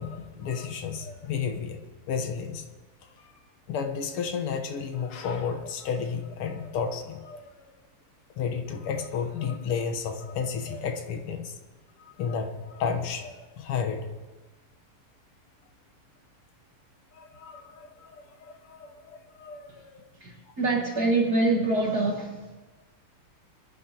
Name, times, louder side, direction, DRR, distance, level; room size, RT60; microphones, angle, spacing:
voice 1, 0.0-2.6 3.2-3.3 3.7-7.7 8.4-11.6 12.1-14.1 17.1-20.1, left 6 dB, 90° left, 5 dB, 2.0 m, -32 dB
voice 2, 20.2-22.6, right 2 dB, 50° right, -2 dB, 2.1 m, -25 dB
23.0 x 11.0 x 2.9 m, 1.2 s
omnidirectional pair, 2.4 m